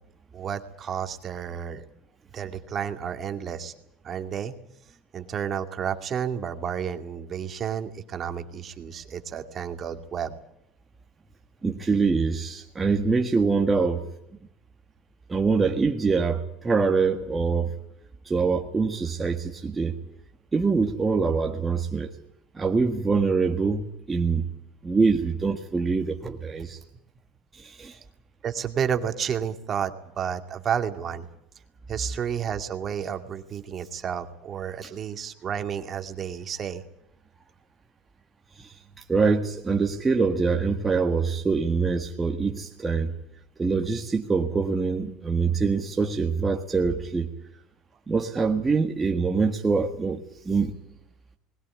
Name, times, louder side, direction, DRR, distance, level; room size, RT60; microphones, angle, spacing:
voice 1, 0.3-1.8 2.3-3.7 4.0-4.5 5.1-10.4 28.4-31.2 31.9-36.8, right 8 dB, 40° right, 7 dB, 2.4 m, -31 dB
voice 2, 11.6-14.0 15.3-17.7 18.3-20.0 20.5-22.1 22.5-24.4 24.8-26.8 27.5-28.0 34.8-34.9 38.6-38.7 39.1-43.1 43.6-47.3 48.1-50.7, right 4 dB, 20° right, 2 dB, 1.8 m, -24 dB
20.5 x 18.0 x 9.5 m, 0.81 s
supercardioid pair, 100°, 0 cm